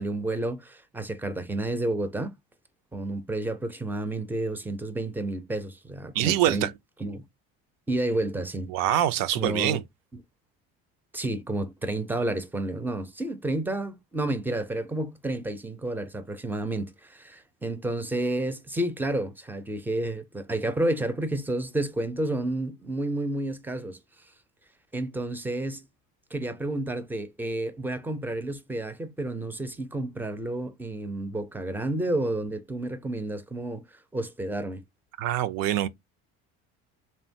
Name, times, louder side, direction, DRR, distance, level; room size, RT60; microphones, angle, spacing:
voice 1, 0.0-2.3 2.9-6.7 7.0-7.2 7.9-8.7 9.4-9.8 11.1-24.0 24.9-25.8 26.3-33.8 34.1-34.8, right 1 dB, 5° right, 0.5 m, -30 dB
voice 2, 6.1-6.7 8.7-9.8 35.2-35.9, right 12 dB, 70° right, 0.5 m, -24 dB
2.9 x 2.2 x 2.6 m
supercardioid pair, 85°, 36 cm